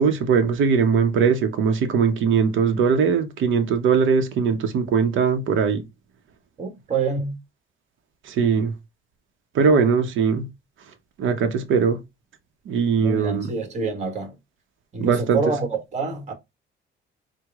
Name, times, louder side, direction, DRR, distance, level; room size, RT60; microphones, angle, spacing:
voice 1, 0.0-5.8 8.2-8.7 9.5-10.5 11.2-12.0 12.7-13.5 15.0-15.4, right 6 dB, 75° right, 0.9 m, -20 dB
voice 2, 6.6-7.4 13.0-14.4 14.9-16.3, right 4 dB, 35° right, 1.7 m, -27 dB
4.6 x 2.3 x 3.5 m
cardioid pair, 90°, 20 cm